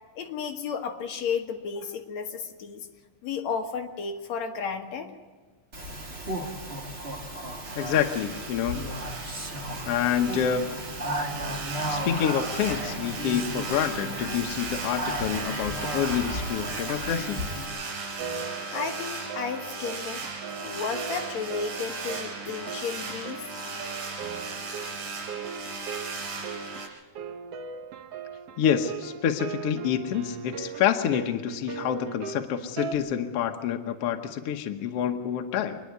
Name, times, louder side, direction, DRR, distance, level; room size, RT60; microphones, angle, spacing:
voice 1, 0.2-2.9 3.2-5.1 18.7-20.2 20.6-23.5, left 6 dB, 55° left, 3 dB, 2.4 m, -33 dB
Speech, 5.7-17.7, right 1 dB, 25° right, 1.4 m, -34 dB
sound 1, 7.6-26.9, right 3 dB, 70° right, 5.6 m, -37 dB
voice 2, 7.8-8.8 9.8-10.7 11.9-17.4 28.6-35.8, left 9 dB, 80° left, 5 dB, 1.3 m, -27 dB
sound 2, 18.2-32.9, right 7 dB, 85° right, 1.3 m, -39 dB
26.0 x 10.5 x 9.6 m, 1.4 s
omnidirectional pair, 4.3 m